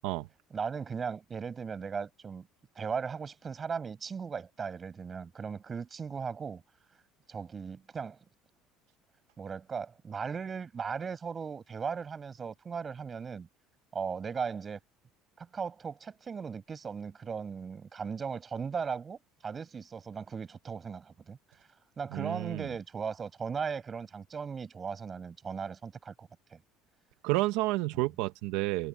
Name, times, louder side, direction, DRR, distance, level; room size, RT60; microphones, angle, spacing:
voice 1, 0.5-2.5 2.8-6.6 7.3-8.2 9.4-13.5 13.9-14.8 15.4-21.4 22.0-26.6, right 6 dB, 25° right, 7.4 m, -37 dB
voice 2, 22.1-22.7 27.2-28.9, right 19 dB, 85° right, 0.9 m, -30 dB
cardioid pair, 140°, 0 cm